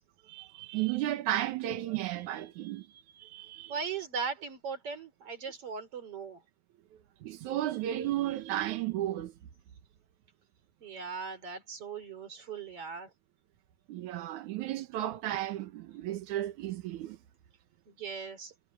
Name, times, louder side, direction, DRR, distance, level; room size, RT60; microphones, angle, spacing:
voice 1, 0.3-3.7 7.2-9.3 13.9-17.2, right 13 dB, 90° right, 2.6 m, -34 dB
voice 2, 3.7-6.4 10.8-13.1 17.9-18.5, right 5 dB, 50° right, 4.4 m, -38 dB
omnidirectional pair, 3.3 m